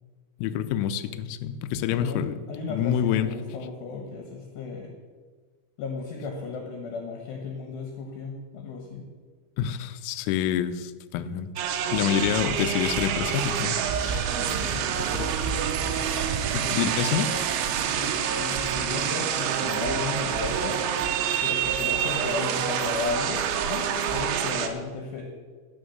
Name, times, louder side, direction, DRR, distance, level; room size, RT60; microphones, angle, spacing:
voice 1, 0.4-2.3 2.7-3.3 9.6-11.5 11.9-14.6 15.0-15.3 15.9-16.0 16.5-17.5, left 9 dB, 85° left, 11 dB, 3.3 m, -27 dB
voice 2, 1.9-4.9 5.8-9.0 14.3-14.9 17.9-20.8 21.4-25.2, left 4 dB, 70° left, 2 dB, 3.1 m, -35 dB
sound 1, 11.6-24.7, right 8 dB, 75° right, 3.0 m, -27 dB
14.5 x 6.2 x 7.8 m, 1.5 s
omnidirectional pair, 5.8 m